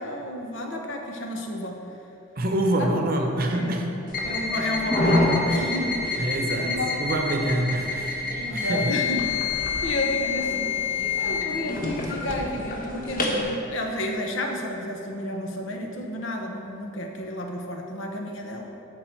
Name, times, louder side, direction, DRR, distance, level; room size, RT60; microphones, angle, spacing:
voice 1, 0.0-1.8 2.8-3.1 3.5-3.7 4.2-6.3 6.6-7.1 8.4-10.7 11.2-18.7, left 1 dB, 65° left, 2 dB, 1.0 m, -31 dB
voice 2, 2.4-4.0 6.2-9.0, right 1 dB, 45° right, 2 dB, 0.9 m, -26 dB
sound 1, 4.1-13.4, left 3 dB, 40° left, 1.1 m, -27 dB
11.5 x 4.8 x 4.5 m, 2.9 s
head